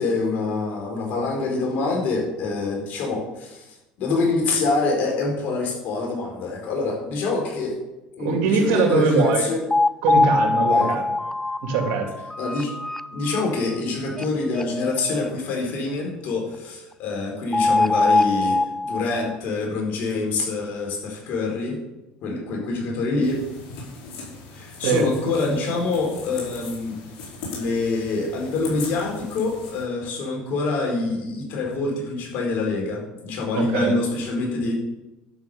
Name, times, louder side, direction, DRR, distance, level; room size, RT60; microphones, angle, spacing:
voice 1, 0.0-7.8 8.2-9.6 10.7-11.0 12.4-12.7 13.1-21.8 22.2-23.4 24.5-27.0 27.5-34.7, left 3 dB, 65° left, 0 dB, 4.6 m, -26 dB
voice 2, 8.2-9.5 10.0-11.1 11.6-12.1 24.8-25.1 33.6-33.9, right 4 dB, 75° right, 3 dB, 2.5 m, -21 dB
sound 1, 9.3-9.4 9.7-13.4 13.8-13.9 14.2-14.3 14.5-15.3 17.5-19.4, left 2 dB, 10° left, 0.3 m, -22 dB
sound 2, 23.2-29.8, left 4 dB, 80° left, 4.6 m, -39 dB
11.5 x 6.2 x 6.9 m, 0.97 s
supercardioid pair, 100°, 3 cm